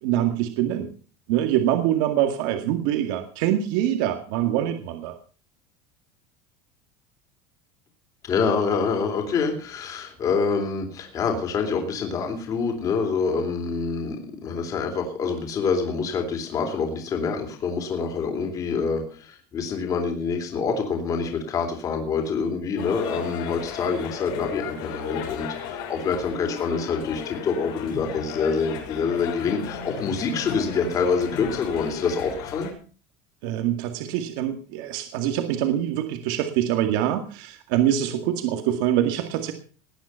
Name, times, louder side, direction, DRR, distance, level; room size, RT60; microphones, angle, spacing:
voice 1, 0.0-0.9 1.3-5.1 33.4-39.5, right 11 dB, 65° right, 6 dB, 2.0 m, -24 dB
voice 2, 8.2-32.7, left 5 dB, 30° left, 4 dB, 3.4 m, -26 dB
sound 1, 22.8-32.7, left 7 dB, 75° left, 5.8 m, -35 dB
19.5 x 9.6 x 5.7 m, 0.40 s
cardioid pair, 165°, 12 cm